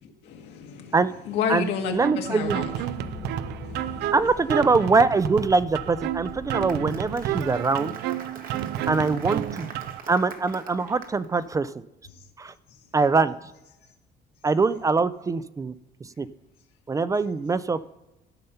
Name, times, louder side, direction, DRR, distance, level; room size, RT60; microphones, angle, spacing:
voice 1, 0.0-0.9 1.2-2.9 3.6-4.1 7.8-7.9, left 7 dB, 90° left, 3 dB, 1.5 m, -31 dB
voice 2, 1.5-2.6 4.1-7.9 8.9-9.7 10.1-11.8 12.4-12.5 12.9-13.4 14.4-15.7 16.0-16.3 16.9-17.8, right 4 dB, 20° right, 16 dB, 0.3 m, -23 dB
sound 1, 2.0-10.0, right 11 dB, 80° right, 0.5 m, -31 dB
sound 2, 2.4-7.5, left 6 dB, 45° left, 1.3 m, -44 dB
Applause, 6.3-11.4, right 5 dB, 55° right, 1.3 m, -44 dB
13.0 x 5.6 x 5.5 m, 0.95 s
cardioid pair, 110°, 17 cm